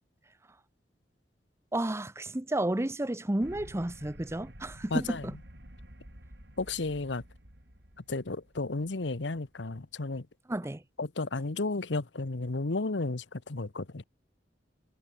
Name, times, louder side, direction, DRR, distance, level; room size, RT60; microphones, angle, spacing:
voice 1, 1.7-5.4 10.5-10.8, right 1 dB, 15° right, 0.7 m, -31 dB
sound 1, 3.4-9.9, equal, 70° right, 5.8 m, -51 dB
voice 2, 4.9-5.2 6.6-7.2 8.1-10.3 11.0-14.0, left 3 dB, 90° left, 1.1 m, -33 dB
head